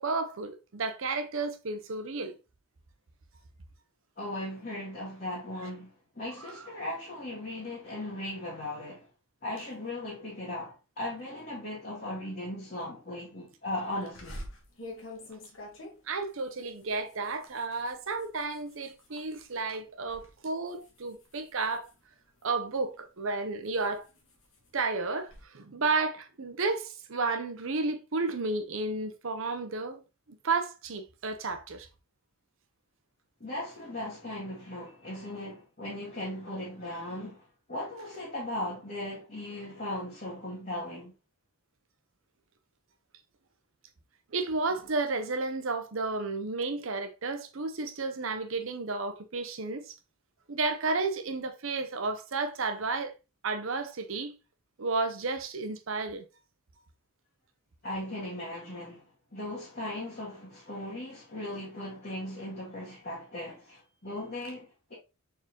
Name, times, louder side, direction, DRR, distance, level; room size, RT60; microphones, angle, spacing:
voice 1, 0.0-2.4 6.4-6.7 16.1-21.9 22.4-24.1 24.7-30.0 30.3-31.9 44.3-50.0 50.5-53.1 53.4-54.4 54.8-56.3, right 3 dB, 70° right, 0.7 m, -32 dB
voice 2, 4.2-9.1 9.4-14.4 33.4-37.4 37.7-41.1 57.8-59.0 59.3-64.9, left 1 dB, 40° left, 1.7 m, -38 dB
sound 1, 14.1-19.5 19.9-20.3 20.7-22.7 23.2-25.4, left 1 dB, 65° left, 1.4 m, -47 dB
4.5 x 3.8 x 2.9 m
head